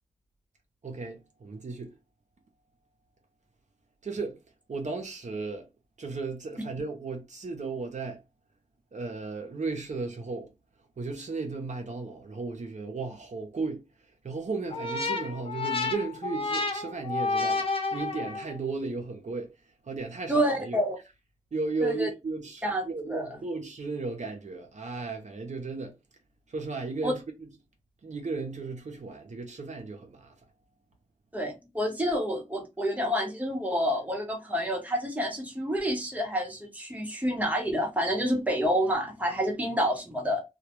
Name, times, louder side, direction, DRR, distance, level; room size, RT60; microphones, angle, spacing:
voice 1, 0.8-1.9 4.0-4.4 4.7-5.7 6.0-8.2 8.9-10.5 11.0-13.8 14.2-19.5 19.9-20.8 21.5-26.0 26.5-27.2 28.0-30.3, right 3 dB, 65° right, 0.6 m, -35 dB
sound 1, 14.7-18.6, left 3 dB, 45° left, 0.7 m, -30 dB
voice 2, 20.3-21.0 21.8-22.1 22.6-23.4 27.0-27.1 31.3-40.4, equal, 10° right, 0.9 m, -28 dB
2.2 x 2.2 x 2.9 m
wide cardioid pair, 70°, 13 cm